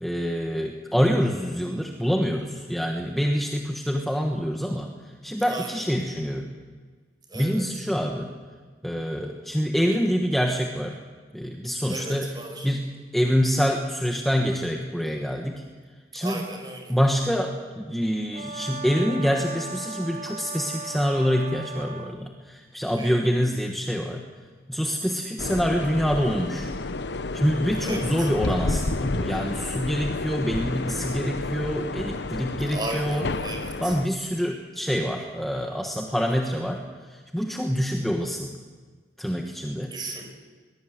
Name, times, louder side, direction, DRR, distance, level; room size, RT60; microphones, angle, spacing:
voice 1, 0.0-6.5 7.3-8.3 8.8-11.0 11.3-12.4 12.6-15.6 16.1-16.4 16.9-24.2 24.7-26.7 27.3-33.3 33.8-38.5 39.2-39.9, equal, ahead, 1 dB, 1.4 m, -26 dB
voice 2, 5.5-5.8 7.3-7.6 11.9-12.7 16.1-17.0 23.0-23.2 27.8-28.3 32.6-34.0 36.1-36.3 39.9-40.2, right 2 dB, 25° right, 3 dB, 5.3 m, -35 dB
Brass instrument, 18.3-22.2, right 3 dB, 45° right, 1.4 m, -37 dB
sound 1, 25.4-34.1, left 3 dB, 80° left, 0.9 m, -30 dB
22.5 x 20.5 x 8.0 m, 1.5 s
head